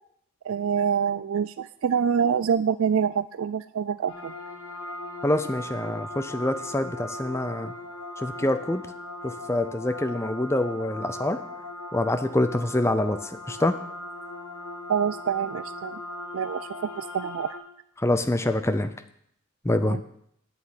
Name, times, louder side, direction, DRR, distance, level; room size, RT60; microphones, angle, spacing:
voice 1, 0.4-4.3 14.9-16.0 16.3-17.6 19.8-20.0, right 7 dB, 70° right, 14 dB, 0.3 m, -26 dB
sound 1, 4.1-17.6, left 2 dB, 60° left, 3.1 m, -39 dB
voice 2, 5.2-7.7 8.2-8.8 9.2-11.4 11.9-13.7 18.0-18.9 19.6-20.0, left 1 dB, 15° left, 10 dB, 0.6 m, -26 dB
8.6 x 7.6 x 8.9 m, 0.70 s
head